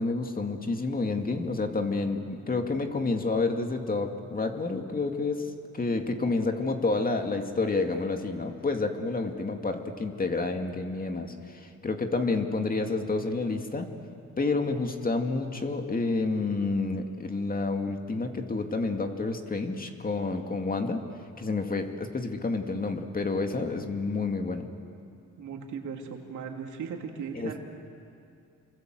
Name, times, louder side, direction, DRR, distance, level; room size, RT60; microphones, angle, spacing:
voice 1, 0.0-13.9 14.4-21.0 21.4-24.7 27.3-27.5, left 3 dB, 30° left, 5 dB, 2.4 m, -29 dB
voice 2, 25.4-27.6, right 6 dB, 75° right, 2 dB, 3.1 m, -37 dB
28.5 x 24.5 x 7.8 m, 2.5 s
cardioid pair, 90°, 30 cm